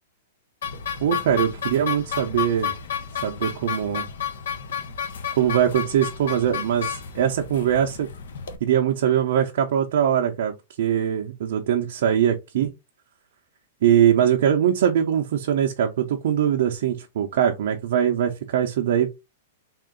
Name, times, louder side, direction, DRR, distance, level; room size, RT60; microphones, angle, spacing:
sound 1, 0.6-8.6, left 8 dB, 80° left, 0.8 m, -31 dB
voice 1, 1.0-2.7 3.2-4.1 5.4-8.1 8.6-12.7 13.8-19.1, right 9 dB, 60° right, 0.5 m, -22 dB
3.6 x 2.4 x 3.7 m
supercardioid pair, 165°, 0 cm